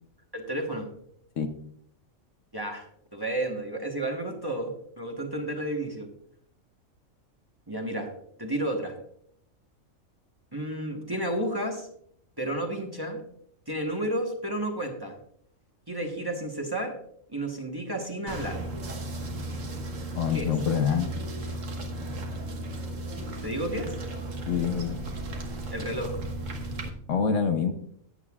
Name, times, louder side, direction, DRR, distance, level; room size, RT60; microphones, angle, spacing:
voice 1, 0.3-0.9 2.5-2.9 3.1-6.1 7.7-8.1 8.4-9.0 10.5-11.9 12.4-13.2 13.7-15.2 15.9-17.0 17.3-18.7 20.3-20.5 23.4-23.9 25.7-26.2, right 1 dB, 20° right, 1 dB, 1.2 m, -31 dB
sound 1, 18.3-26.9, right 1 dB, 65° right, 1.6 m, -35 dB
voice 2, 20.1-21.1 24.5-25.0 27.1-27.7, left 6 dB, 65° left, 8 dB, 1.1 m, -26 dB
14.5 x 9.1 x 2.4 m, 0.66 s
omnidirectional pair, 1.4 m